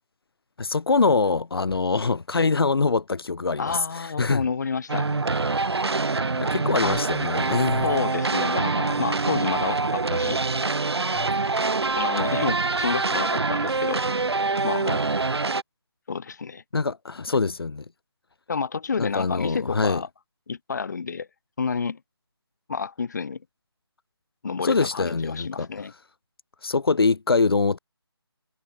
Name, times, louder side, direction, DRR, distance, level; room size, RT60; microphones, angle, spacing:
voice 1, 0.6-4.4 6.4-7.9 16.7-17.8 19.0-20.0 24.6-25.7 26.6-27.8, left 4 dB, 65° left, 1.5 m, -24 dB
voice 2, 3.6-5.1 6.8-7.0 7.8-10.4 12.0-14.2 14.6-15.0 16.1-16.6 18.5-20.1 20.5-21.3 21.6-22.0 22.7-23.4 24.4-25.9, left 5 dB, 45° left, 1.5 m, -29 dB
sound 1, 4.9-15.6, right 3 dB, 75° right, 2.0 m, -25 dB
figure-of-eight pair, 170°, 14 cm